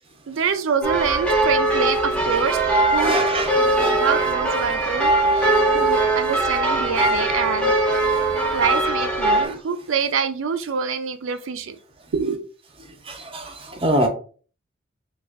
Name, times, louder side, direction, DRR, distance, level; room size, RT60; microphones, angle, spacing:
voice 1, 0.3-3.2 3.9-7.8 8.5-11.8 12.1-12.4, right 6 dB, 80° right, 0.5 m, -26 dB
sound 1, 0.8-9.4, right 2 dB, 5° left, 0.7 m, -20 dB
voice 2, 3.0-4.0 9.4-9.6 13.1-14.1, right 1 dB, 30° right, 0.7 m, -25 dB
3.3 x 2.4 x 3.5 m
head